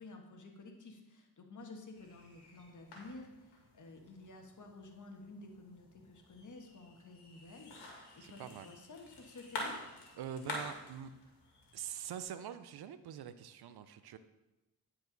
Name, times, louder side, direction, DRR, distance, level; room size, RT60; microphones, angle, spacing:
voice 1, 0.0-9.8, left 2 dB, 50° left, 3 dB, 1.4 m, -52 dB
sound 1, 1.9-12.2, left 2 dB, 90° left, 2.0 m, -48 dB
voice 2, 8.2-8.7 10.2-11.1 11.7-14.2, right 9 dB, 70° right, 12 dB, 0.6 m, -44 dB
9.6 x 4.7 x 4.0 m, 1.0 s
cardioid pair, 70°, 39 cm